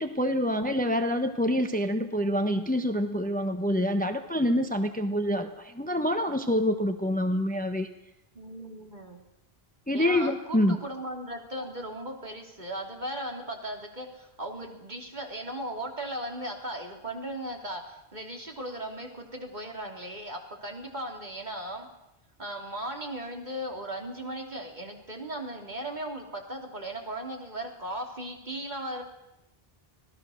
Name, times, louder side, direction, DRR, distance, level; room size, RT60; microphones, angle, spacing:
voice 1, 0.0-7.9 9.9-10.8, equal, 10° left, 7 dB, 1.0 m, -26 dB
voice 2, 8.3-9.2 9.9-21.9 22.4-29.0, right 1 dB, 45° right, 1 dB, 3.3 m, -37 dB
25.5 x 18.0 x 6.4 m, 0.89 s
omnidirectional pair, 1.0 m